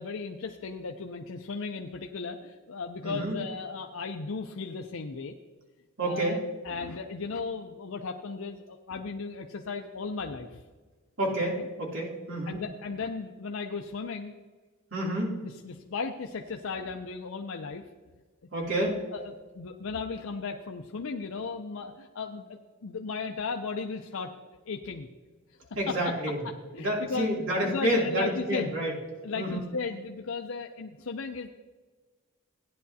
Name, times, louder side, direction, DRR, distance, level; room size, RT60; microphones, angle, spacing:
voice 1, 0.0-5.4 6.0-10.6 12.5-14.3 15.4-17.9 18.8-24.3 24.7-25.1 25.5-26.1 26.7-27.3 27.6-28.7 29.2-31.5, left 4 dB, 65° left, 4 dB, 0.6 m, -36 dB
voice 2, 3.0-3.4 6.0-6.4 11.2-12.6 14.9-15.4 18.5-18.9 25.7-26.4 26.8-28.9 29.3-29.6, right 1 dB, 65° right, -3 dB, 2.9 m, -29 dB
16.0 x 10.0 x 2.8 m, 1.4 s
head